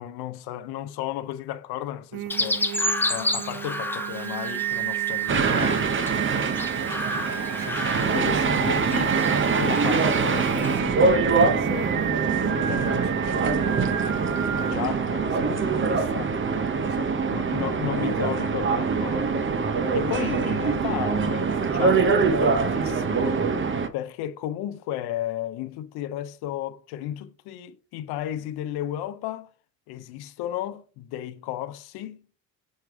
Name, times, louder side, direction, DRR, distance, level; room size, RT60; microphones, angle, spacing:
voice 1, 0.0-2.7 3.1-5.8 7.1-9.2 9.6-12.0 12.4-13.8 14.4-16.3 16.9-19.6 19.9-23.4 23.9-29.5 29.9-32.2, left 12 dB, 80° left, 0.8 m, -34 dB
Singing, 2.1-14.7, right 12 dB, 65° right, 0.7 m, -32 dB
Chirp tweet, 2.3-10.8, left 1 dB, 5° left, 0.7 m, -32 dB
sound 1, 5.3-23.9, right 5 dB, 30° right, 0.8 m, -24 dB
6.5 x 3.3 x 4.7 m
supercardioid pair, 80°, 38 cm